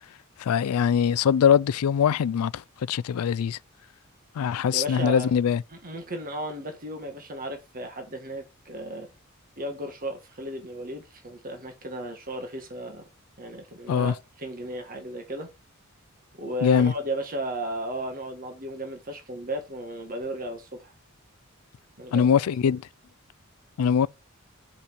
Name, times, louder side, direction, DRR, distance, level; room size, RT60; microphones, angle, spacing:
voice 1, 0.4-2.6 2.9-3.6 4.4-5.6 13.9-14.1 16.6-16.9 22.1-22.8 23.8-24.1, left 7 dB, 85° left, 0.4 m, -22 dB
voice 2, 4.7-5.4 5.7-9.1 9.6-13.0 13.4-15.5 16.4-20.9 22.0-22.3, right 1 dB, 40° right, 1.6 m, -35 dB
6.6 x 5.4 x 5.1 m
head